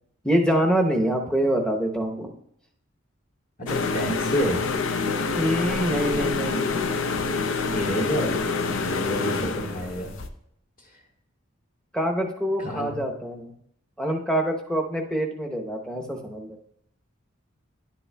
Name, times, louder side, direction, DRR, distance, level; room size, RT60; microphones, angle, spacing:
voice 1, 0.2-2.3 5.3-6.7 11.9-13.5 14.0-16.6, right 1 dB, 5° left, 2 dB, 0.8 m, -25 dB
voice 2, 3.6-4.6 7.7-8.4 8.7-10.1 12.6-13.1, equal, 40° left, -1 dB, 1.7 m, -29 dB
sound 1, 3.7-10.3, left 4 dB, 75° left, 0.5 m, -27 dB
10.5 x 8.4 x 2.2 m, 0.73 s
head